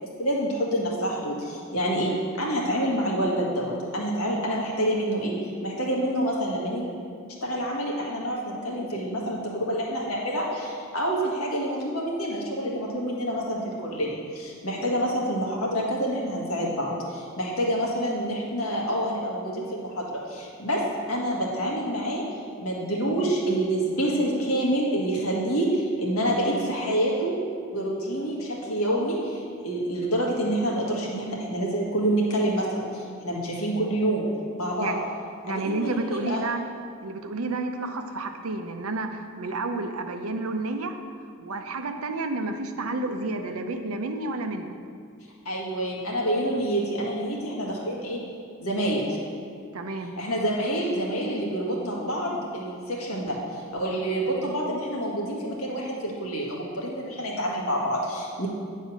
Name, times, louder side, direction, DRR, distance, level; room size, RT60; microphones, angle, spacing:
voice 1, 0.2-2.1 2.4-5.3 5.6-6.9 7.4-20.8 21.1-22.2 22.6-27.3 27.7-34.3 34.6-35.0 35.4-36.4 45.4-48.2 48.6-49.2 50.2-58.5, right 1 dB, 85° left, -3 dB, 1.7 m, -27 dB
voice 2, 35.4-36.6 37.0-41.0 41.4-44.7 49.7-50.1, right 2 dB, 90° right, 6 dB, 0.7 m, -30 dB
9.2 x 4.2 x 6.3 m, 2.3 s
head